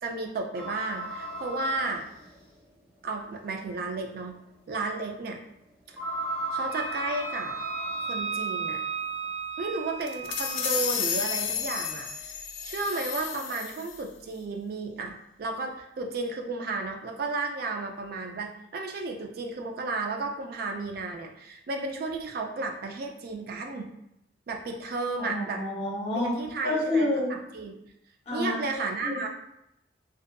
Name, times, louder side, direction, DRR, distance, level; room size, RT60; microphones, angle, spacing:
voice 1, 0.0-2.0 3.0-4.4 4.7-5.4 6.5-7.5 8.0-8.8 9.6-23.9 24.5-25.6 26.1-27.7 28.3-29.3, right 3 dB, 50° right, 3 dB, 0.3 m, -33 dB
sound 1, 0.5-2.6 3.3-3.4 3.9-4.0 5.9-8.4, right 1 dB, 15° right, 0.8 m, -36 dB
Wind instrument woodwind instrument, 6.7-10.7, right 5 dB, 70° right, 1.4 m, -34 dB
sound 2, 10.0-14.0, left 7 dB, 90° left, 0.3 m, -32 dB
voice 2, 25.2-26.3 26.6-27.3 28.3-29.3, left 1 dB, 35° left, -4 dB, 0.7 m, -29 dB
2.6 x 2.4 x 2.2 m, 0.82 s
head